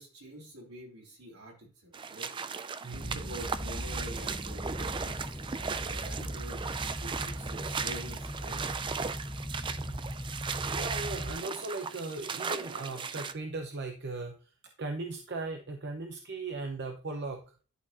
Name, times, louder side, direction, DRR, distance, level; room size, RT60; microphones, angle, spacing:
voice 1, 0.0-6.6 7.0-8.8, right 1 dB, 75° right, -2 dB, 3.9 m, -47 dB
sound 1, 1.9-13.3, right 5 dB, 20° right, 0.3 m, -37 dB
voice 2, 2.8-3.2 9.8-10.1 10.7-14.4 14.8-17.4, right 3 dB, 50° right, 4 dB, 0.8 m, -38 dB
sound 2, 2.9-11.3, equal, 5° left, 0.8 m, -39 dB
11.0 x 4.3 x 2.9 m, 0.37 s
head